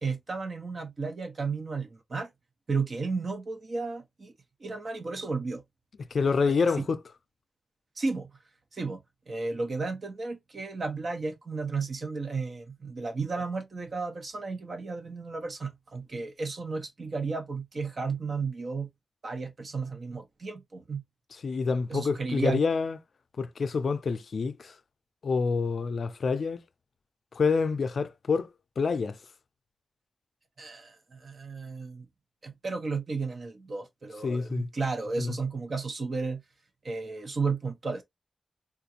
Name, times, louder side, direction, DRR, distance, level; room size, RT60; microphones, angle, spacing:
voice 1, 0.0-2.3 2.7-4.3 4.6-5.6 8.0-8.3 8.7-18.9 19.2-21.0 21.9-22.6 30.6-32.1 32.4-36.4 36.8-38.0, right 4 dB, 50° right, 0.8 m, -33 dB
voice 2, 6.1-7.0 21.4-23.0 23.4-24.8 25.2-26.6 27.3-28.5 28.8-29.2 34.2-34.7 35.2-35.4, left 5 dB, 65° left, 0.4 m, -27 dB
3.6 x 2.5 x 2.7 m
wide cardioid pair, 110°, 0 cm